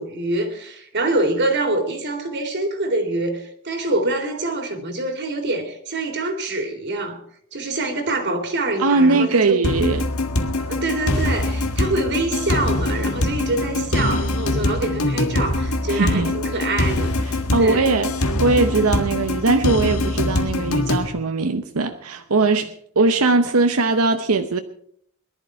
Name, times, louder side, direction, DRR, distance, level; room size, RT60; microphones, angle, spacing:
voice 1, 0.0-7.2 7.5-9.6 10.6-17.2 17.6-17.9, right 2 dB, 55° right, 2.6 m, -25 dB
voice 2, 8.8-10.1 15.9-16.3 17.3-24.6, right 3 dB, 85° right, 0.9 m, -20 dB
sound 1, 9.6-21.1, left 2 dB, 90° left, 1.6 m, -23 dB
21.0 x 11.5 x 4.7 m
head